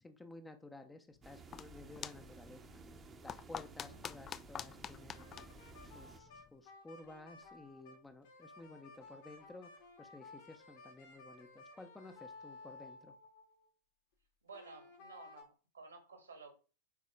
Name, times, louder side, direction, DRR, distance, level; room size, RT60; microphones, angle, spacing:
voice 1, 0.0-3.0 3.2-5.2 5.8-9.7 10.0-13.1, left 2 dB, 10° left, 1.0 m, -54 dB
sound 1, 1.2-6.5, left 8 dB, 25° left, 0.3 m, -49 dB
sound 2, 1.2-6.2, right 4 dB, 20° right, 1.1 m, -56 dB
sound 3, 5.1-13.7 14.5-15.4, left 3 dB, 55° left, 2.3 m, -56 dB
voice 2, 14.4-16.5, right 4 dB, 75° right, 2.2 m, -54 dB
9.4 x 4.2 x 3.8 m
figure-of-eight pair, 90°, 0 cm